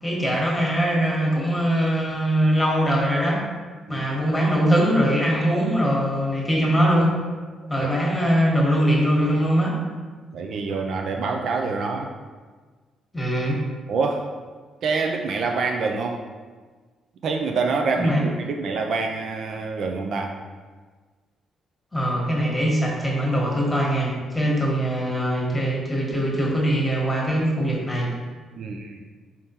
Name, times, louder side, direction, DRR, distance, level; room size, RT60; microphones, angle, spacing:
voice 1, 0.0-3.4 3.9-7.1 7.7-9.7 13.1-13.6 18.0-18.2 21.9-28.1, equal, 10° left, -4 dB, 1.3 m, -22 dB
voice 2, 10.3-12.1 13.9-14.4 14.8-16.2 17.2-20.4 28.5-29.1, right 4 dB, 65° right, 2 dB, 0.4 m, -26 dB
4.3 x 3.5 x 2.8 m, 1.4 s
cardioid pair, 90°, 0 cm